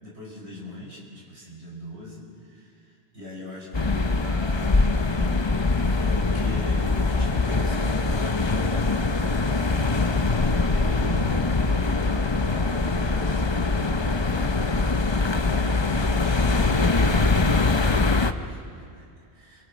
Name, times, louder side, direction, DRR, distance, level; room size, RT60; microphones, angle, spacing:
voice 1, 0.0-5.5 5.9-8.9 9.4-9.6 10.4-11.4 12.4-19.6, equal, 75° right, -3 dB, 6.2 m, -40 dB
sound 1, 3.7-18.3, left 3 dB, 25° left, 0.8 m, -23 dB
30.0 x 24.5 x 6.4 m, 2.4 s
omnidirectional pair, 1.1 m